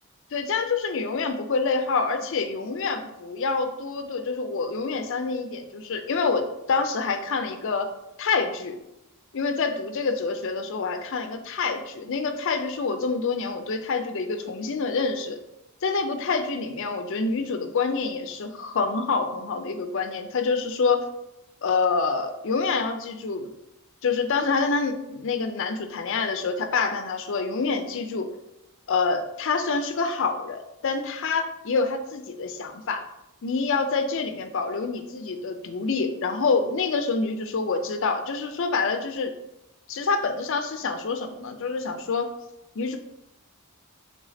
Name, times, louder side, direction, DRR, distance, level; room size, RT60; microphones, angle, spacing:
voice 1, 0.3-7.9 8.2-8.8 9.3-15.4 15.8-21.0 21.6-23.5 24.0-28.3 28.9-33.0 33.4-39.3 39.9-42.3 42.8-43.0, left 4 dB, 60° left, 7 dB, 0.5 m, -27 dB
5.0 x 3.4 x 2.7 m, 0.89 s
head